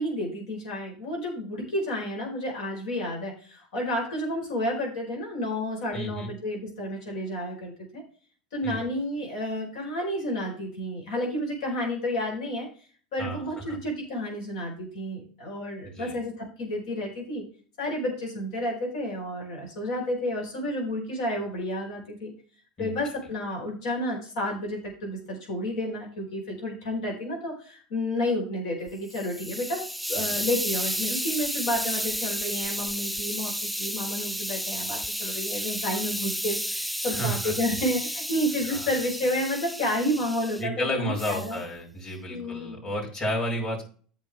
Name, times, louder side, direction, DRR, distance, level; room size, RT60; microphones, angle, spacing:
voice 1, 0.0-8.0 8.5-12.7 13.1-17.4 17.8-22.3 22.8-41.6 42.3-42.8, left 1 dB, 65° left, -1 dB, 4.8 m, -31 dB
voice 2, 5.9-6.3 8.6-8.8 13.2-13.4 15.8-16.1 22.8-23.0 30.2-30.4 37.1-37.5 38.7-38.9 40.6-43.8, equal, 35° left, -2 dB, 5.0 m, -32 dB
Hiss, 28.9-40.6 41.2-41.6, equal, ahead, 0.4 m, -32 dB
13.5 x 5.9 x 3.6 m, 0.41 s
figure-of-eight pair, 75°, 4 cm